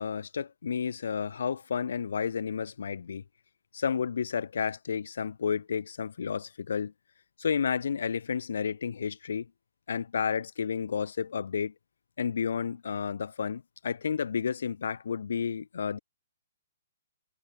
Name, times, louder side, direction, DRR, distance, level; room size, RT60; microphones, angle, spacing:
voice 1, 0.0-3.2 3.7-6.9 7.4-9.5 9.9-11.7 12.2-16.0, left 6 dB, 60° left, 0.9 m, -31 dB
figure-of-eight pair, 120°, 0 cm